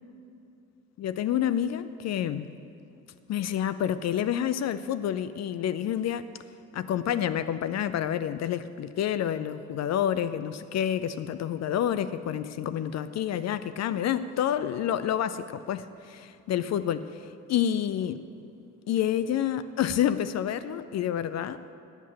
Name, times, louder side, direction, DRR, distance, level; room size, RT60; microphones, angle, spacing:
voice 1, 1.0-2.5 3.3-6.3 6.7-18.2 18.9-21.6, left 10 dB, 40° left, 13 dB, 0.5 m, -28 dB
8.1 x 7.2 x 8.4 m, 2.6 s
figure-of-eight pair, 45°, 41 cm